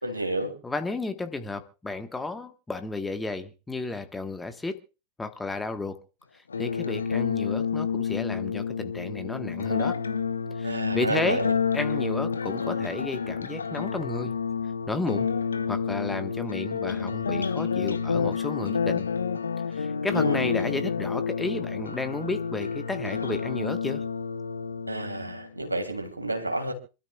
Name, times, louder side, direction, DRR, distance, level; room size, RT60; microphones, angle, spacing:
voice 1, 0.0-0.5 10.6-11.6 20.1-20.7 24.9-26.7, right 1 dB, 85° right, 4 dB, 3.0 m, -30 dB
voice 2, 0.6-4.8 5.2-6.0 6.6-9.9 10.6-11.4 11.7-14.3 14.9-15.3 15.7-19.1 19.7-24.0, left 3 dB, 10° left, 8 dB, 1.4 m, -32 dB
sound 1, 6.5-25.5, left 6 dB, 75° left, 0.9 m, -29 dB
27.0 x 12.5 x 2.4 m, 0.31 s
figure-of-eight pair, 90°, 0 cm